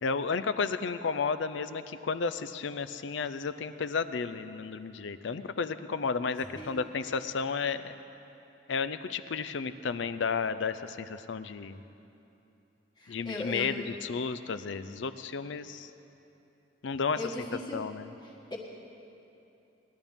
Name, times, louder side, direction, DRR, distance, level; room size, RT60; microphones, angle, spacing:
voice 1, 0.0-7.9 8.7-11.8 13.1-15.9 16.8-17.2 17.7-18.1, left 5 dB, 65° left, 12 dB, 0.5 m, -32 dB
voice 2, 13.0-13.7 17.1-17.8 18.5-18.6, left 1 dB, 20° left, -2 dB, 1.5 m, -37 dB
19.5 x 11.5 x 3.6 m, 2.8 s
head